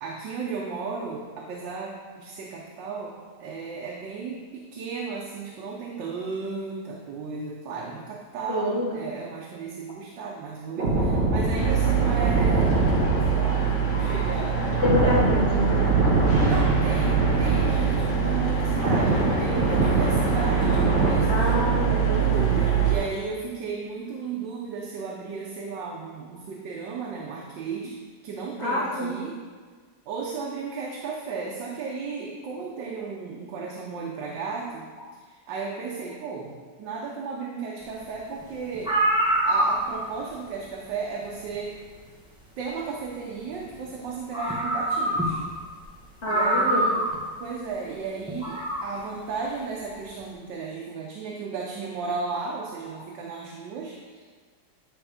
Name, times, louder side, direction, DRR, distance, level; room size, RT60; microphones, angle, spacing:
voice 1, 0.0-12.9 13.3-14.6 15.0-15.1 16.4-21.5 22.2-28.0 28.2-29.4 30.1-39.0 39.4-41.8 42.6-45.4 46.3-47.0 47.4-54.3, right 5 dB, 90° right, -2 dB, 1.5 m, -34 dB
voice 2, 8.5-8.9 14.8-15.9 21.3-22.6 28.6-29.2 46.2-46.9, left 1 dB, 40° left, -4 dB, 1.5 m, -26 dB
sound 1, 10.8-18.3 18.5-22.2 22.5-22.8, right 2 dB, 30° right, 2.0 m, -25 dB
sound 2, 11.6-23.0, right 7 dB, 75° left, 2.3 m, -24 dB
sound 3, 38.4-38.5 38.7-40.1 41.5-41.6 43.9-44.0 44.3-45.5 45.8-45.9 46.2-47.2 48.3-48.9, right 1 dB, 5° right, 0.9 m, -24 dB
9.9 x 3.6 x 5.0 m, 1.5 s
omnidirectional pair, 1.9 m